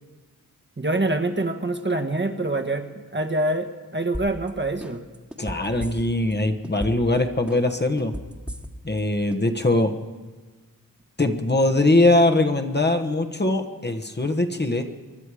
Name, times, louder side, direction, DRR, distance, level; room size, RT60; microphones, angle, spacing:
voice 1, 0.8-2.9 3.1-5.0, right 2 dB, 35° right, 6 dB, 1.4 m, -25 dB
sound 1, 4.1-4.5 4.8-6.3 6.6-7.2 7.5-9.0 9.3-9.4, equal, 5° right, 1.6 m, -34 dB
voice 2, 5.4-8.1 8.8-9.9 11.2-14.8, left 2 dB, 30° left, 5 dB, 1.2 m, -21 dB
25.5 x 11.0 x 4.9 m, 1.3 s
cardioid pair, 50°, 34 cm